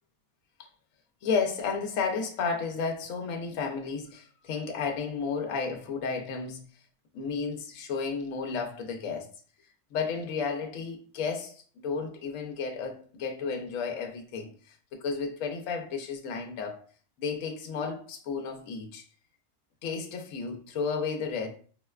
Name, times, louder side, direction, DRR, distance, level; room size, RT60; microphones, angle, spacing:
voice 1, 1.2-6.6 7.1-9.3 9.9-16.8 17.2-19.0 19.8-21.5, left 5 dB, 80° left, 1.0 m, -32 dB
4.2 x 2.1 x 2.3 m
omnidirectional pair, 1.4 m